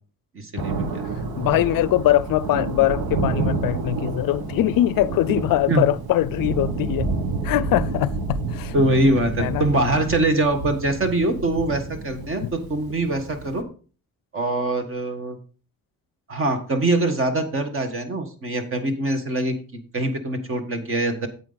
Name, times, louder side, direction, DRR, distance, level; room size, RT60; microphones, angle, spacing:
voice 1, 0.3-1.1 5.7-5.8 8.7-13.6 14.3-15.4 16.3-21.3, right 2 dB, 35° right, 1.5 m, -23 dB
Thunder, 0.6-13.6, right 3 dB, 85° right, 1.5 m, -29 dB
voice 2, 1.4-7.1 7.4-8.7 9.4-9.7 12.4-12.5, left 14 dB, 70° left, 0.5 m, -22 dB
9.2 x 8.2 x 4.0 m
cardioid pair, 175°, 36 cm